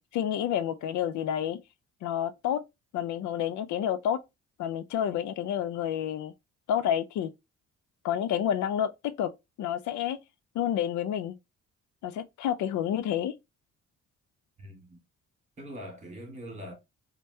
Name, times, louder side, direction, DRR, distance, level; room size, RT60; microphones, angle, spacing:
voice 1, 0.0-1.6 2.0-2.6 2.9-4.2 4.6-6.3 6.7-7.3 8.0-9.3 9.6-10.2 10.5-11.4 12.0-13.3, left 10 dB, 70° left, 0.4 m, -29 dB
voice 2, 14.6-15.0 15.6-16.7, equal, 25° right, 2.0 m, -42 dB
4.5 x 2.2 x 2.7 m
cardioid pair, 90°, 30 cm